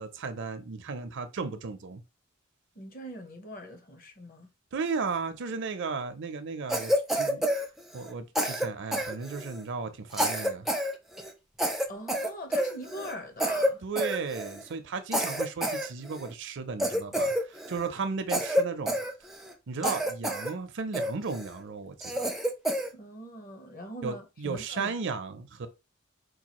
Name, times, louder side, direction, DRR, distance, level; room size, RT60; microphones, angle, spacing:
voice 1, 0.0-2.0 4.7-7.6 7.9-10.7 13.8-19.0 19.7-22.3 24.0-25.7, right 4 dB, 60° right, 0.5 m, -35 dB
voice 2, 2.7-4.5 11.9-13.8 22.9-24.9, equal, 45° left, 0.9 m, -42 dB
Cough, 6.7-8.1 8.4-9.6 10.1-10.9 11.2-11.3 11.6-13.1 13.4-13.7 14.0-14.6 15.1-16.3 16.8-17.9 18.3-19.5 19.8-20.5 20.9-21.5 22.0-22.9, equal, ahead, 0.4 m, -29 dB
4.6 x 2.3 x 2.9 m
head